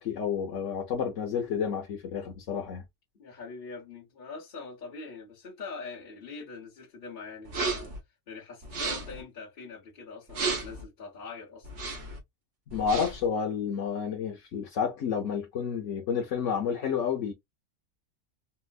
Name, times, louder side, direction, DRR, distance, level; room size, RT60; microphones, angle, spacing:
voice 1, 0.0-2.8 12.7-17.3, left 7 dB, 85° left, 1.1 m, -30 dB
voice 2, 3.1-7.9 8.3-11.7, left 4 dB, 45° left, 1.3 m, -43 dB
sound 1, 7.5-8.0 8.6-9.2 10.3-10.8 11.6-12.2 12.7-13.3, right 4 dB, 70° right, 1.4 m, -33 dB
4.3 x 2.1 x 2.3 m
omnidirectional pair, 1.3 m